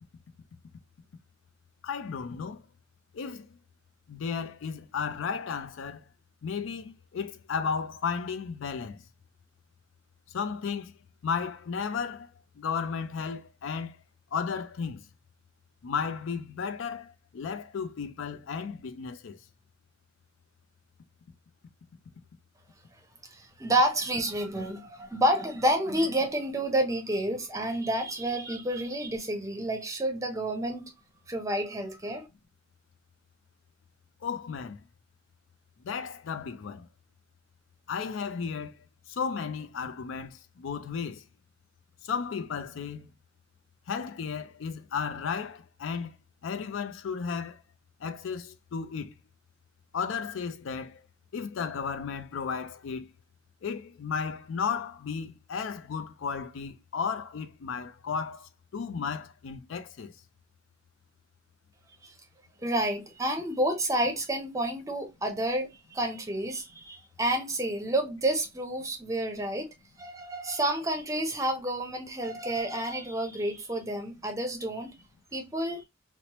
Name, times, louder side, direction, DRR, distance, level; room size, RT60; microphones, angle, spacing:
voice 1, 1.8-2.6 3.1-3.5 4.1-6.0 6.4-9.0 10.3-10.9 11.2-12.3 12.6-14.0 14.3-15.0 15.8-19.4 34.2-34.8 35.8-36.9 37.9-38.8 39.1-41.2 42.0-43.1 43.9-46.1 46.4-47.6 48.0-49.1 49.9-51.0 51.3-53.1 53.6-60.1, left 6 dB, 85° left, 0.4 m, -34 dB
voice 2, 23.3-30.8 31.3-32.3 62.0-62.1 62.6-74.9 75.3-75.8, right 1 dB, 15° right, 0.6 m, -29 dB
3.0 x 2.0 x 2.9 m
head